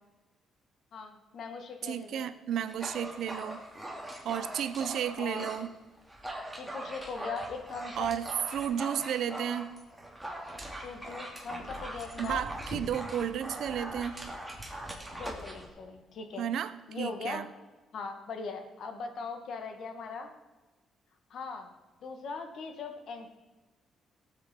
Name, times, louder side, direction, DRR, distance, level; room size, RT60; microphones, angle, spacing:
voice 1, 0.9-2.3 5.2-5.6 6.6-8.1 10.8-12.5 15.2-16.5 16.9-17.5 17.9-20.3 21.3-21.7 22.0-23.3, left 4 dB, 65° left, 6 dB, 1.6 m, -40 dB
voice 2, 1.8-3.7 4.2-5.7 8.0-9.7 12.2-14.2 16.4-16.7 17.0-17.5, right 9 dB, 75° right, 13 dB, 0.7 m, -33 dB
Dog, 2.7-5.6 6.0-15.7, right 1 dB, 5° right, 2.6 m, -41 dB
17.5 x 7.9 x 4.5 m, 1.2 s
cardioid pair, 115°, 0 cm